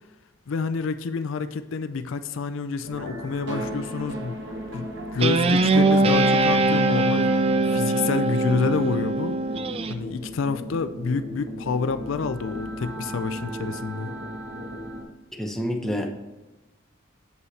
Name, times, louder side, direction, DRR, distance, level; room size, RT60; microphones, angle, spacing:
voice 1, 0.5-4.4 4.7-7.3 7.6-9.4 9.9-14.1, left 5 dB, 65° left, 11 dB, 0.4 m, -28 dB
sound 1, 2.8-15.0, equal, 55° right, 1.3 m, -36 dB
Guitar, 5.2-9.9, right 2 dB, 30° right, 0.3 m, -21 dB
Bass guitar, 5.8-9.7, right 9 dB, 85° right, 0.7 m, -35 dB
voice 2, 15.4-16.1, equal, ahead, 1 dB, 0.8 m, -27 dB
7.9 x 5.6 x 4.1 m, 1.1 s
head